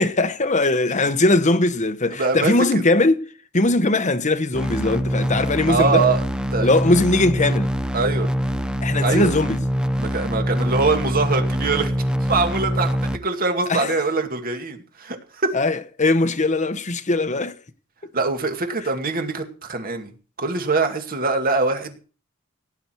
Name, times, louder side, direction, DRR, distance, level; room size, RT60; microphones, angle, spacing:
voice 1, 0.0-3.2 3.5-6.1 6.6-7.7 8.8-9.6 13.7-13.9 15.5-17.5, left 2 dB, 35° left, 1.2 m, -20 dB
voice 2, 2.2-2.8 5.7-6.2 6.5-6.7 7.9-8.3 9.0-9.3 10.0-11.9 12.2-15.5 18.1-20.1 20.4-22.0, right 3 dB, 45° right, 2.3 m, -23 dB
sound 1, 4.5-13.2, equal, 5° right, 0.7 m, -24 dB
17.5 x 9.8 x 4.6 m
head